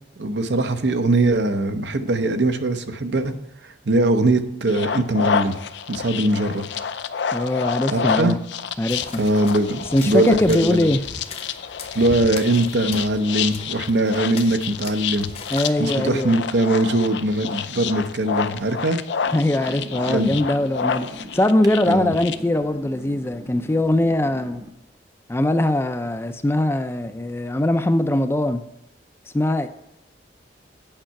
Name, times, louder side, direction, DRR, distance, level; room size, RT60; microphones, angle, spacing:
voice 1, 0.2-3.3 3.6-5.6 5.9-6.6 7.9-8.4 9.2-10.9 11.9-15.3 15.8-19.0 20.1-20.3 21.9-22.1, right 2 dB, 70° right, 0.7 m, -21 dB
sound 1, 4.7-22.4, left 7 dB, 75° left, 0.5 m, -29 dB
voice 2, 7.3-8.4 8.8-9.2 9.9-11.0 15.5-16.3 19.3-21.1 21.3-24.6 25.3-28.6 29.3-29.7, left 1 dB, 15° left, 0.4 m, -21 dB
sound 2, 8.9-15.7, left 3 dB, 35° left, 0.7 m, -39 dB
sound 3, 19.2-24.7, right 1 dB, 20° right, 0.7 m, -40 dB
8.9 x 5.6 x 5.7 m
head